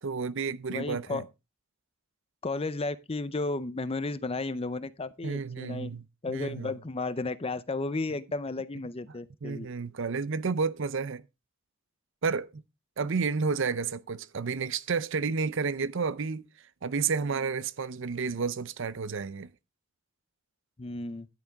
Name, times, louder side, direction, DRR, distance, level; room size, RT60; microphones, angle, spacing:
voice 1, 0.0-1.2 5.2-6.7 9.4-11.2 12.2-12.6 13.0-16.5 16.8-19.5, right 5 dB, 60° right, 0.6 m, -31 dB
voice 2, 0.7-1.2 2.4-5.9 6.2-9.7 20.8-21.3, left 3 dB, 25° left, 0.6 m, -33 dB
10.5 x 8.9 x 3.5 m
head